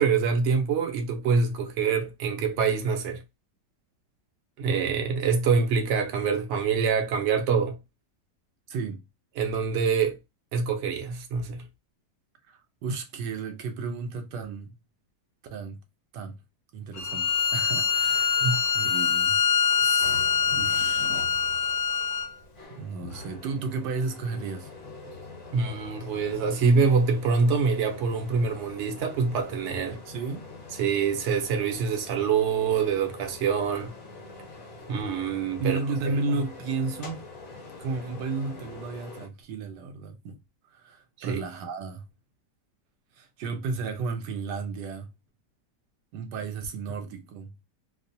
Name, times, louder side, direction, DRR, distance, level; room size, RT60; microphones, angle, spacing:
voice 1, 0.0-3.2 4.6-7.8 9.4-10.2 10.5-11.6 18.4-18.6 25.5-30.0 30.8-33.9 34.9-35.8 41.2-41.4, right 5 dB, 65° right, 0.7 m, -25 dB
voice 2, 8.7-9.0 12.5-14.8 15.5-15.8 16.1-16.4 16.7-18.4 18.7-19.4 19.8-21.1 22.7-24.7 29.9-30.5 35.6-37.3 37.8-40.4 40.7-42.1 43.1-45.1 46.1-47.5, right 4 dB, 80° right, 1.2 m, -33 dB
Bowed string instrument, 17.0-22.3, left 6 dB, 70° left, 1.0 m, -24 dB
sound 1, 20.0-39.3, left 3 dB, 50° left, 1.3 m, -44 dB
2.9 x 2.0 x 2.6 m
omnidirectional pair, 1.8 m